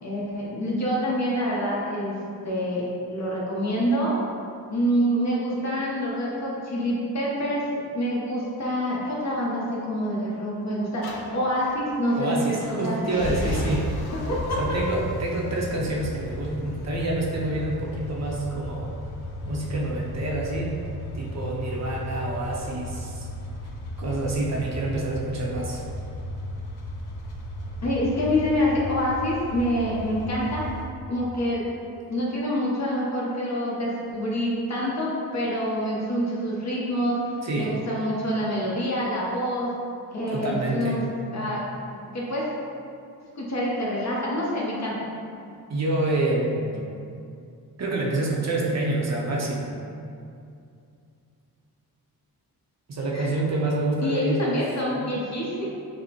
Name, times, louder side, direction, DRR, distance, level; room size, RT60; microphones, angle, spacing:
voice 1, 0.0-2.2 2.4-4.1 4.7-12.6 12.8-13.0 13.5-13.6 14.2-14.6 27.8-30.6 31.1-31.7 32.1-37.2 37.6-39.7 40.1-41.0 41.3-41.6 42.1-42.4 43.4-44.9 53.1-53.3 54.0-55.7, equal, 45° left, -5 dB, 0.8 m, -26 dB
sound 1, 11.0-30.9, left 1 dB, 75° left, 0.6 m, -35 dB
voice 2, 12.2-13.9 14.6-18.9 19.5-20.8 21.2-23.3 24.0-25.8 37.4-37.8 40.3-41.0 45.7-46.8 47.8-49.7 52.9-54.6, right 2 dB, 45° right, -3 dB, 0.5 m, -27 dB
5.0 x 2.0 x 2.8 m, 2.5 s
wide cardioid pair, 105°, 38 cm